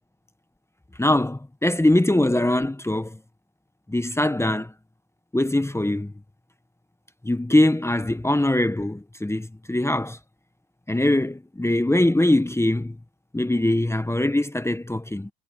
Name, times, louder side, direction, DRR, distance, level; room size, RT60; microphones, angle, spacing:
voice 1, 1.0-3.2 3.9-4.7 5.3-6.1 7.2-10.2 10.9-13.0 13.3-15.3, left 1 dB, 5° left, 1.5 m, -22 dB
hypercardioid pair, 80°, 44 cm